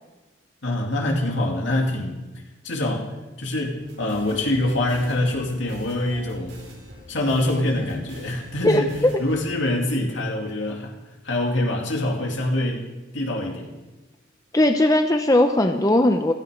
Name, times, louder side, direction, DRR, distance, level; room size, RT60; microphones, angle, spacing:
voice 1, 0.6-2.1 2.6-6.6 7.1-8.9 9.2-11.0 11.2-12.9 13.1-13.7, left 1 dB, 70° left, 1 dB, 2.6 m, -25 dB
sound 1, 3.8-9.4, equal, 65° right, 4.4 m, -44 dB
voice 2, 8.6-9.1 14.5-16.3, left 1 dB, 15° left, 6 dB, 0.6 m, -18 dB
17.0 x 14.0 x 5.2 m, 1.1 s
head